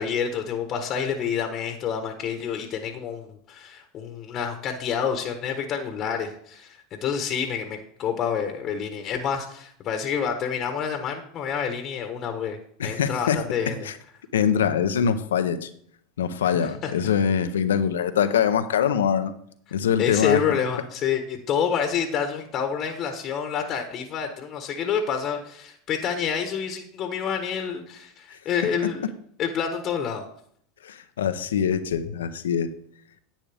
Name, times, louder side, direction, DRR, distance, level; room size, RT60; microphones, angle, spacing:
voice 1, 0.0-13.9 16.6-16.9 20.0-29.1 29.4-30.2, left 7 dB, 40° left, 5 dB, 1.2 m, -28 dB
voice 2, 12.8-13.4 13.8-13.9 14.3-15.7 16.2-19.3 19.7-20.4 30.8-32.7, left 8 dB, 85° left, 10 dB, 0.8 m, -23 dB
10.5 x 8.4 x 3.5 m, 0.65 s
hypercardioid pair, 95°, 0 cm